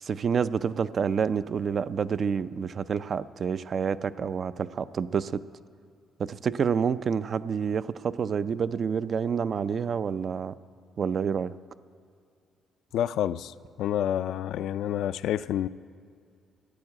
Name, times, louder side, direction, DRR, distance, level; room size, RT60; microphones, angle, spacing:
voice 1, 0.0-5.4 6.2-10.5 11.0-11.5, right 6 dB, 50° right, 0.4 m, -28 dB
voice 2, 12.9-15.7, left 11 dB, 80° left, 0.3 m, -28 dB
13.5 x 8.6 x 9.8 m
cardioid pair, 90°, 0 cm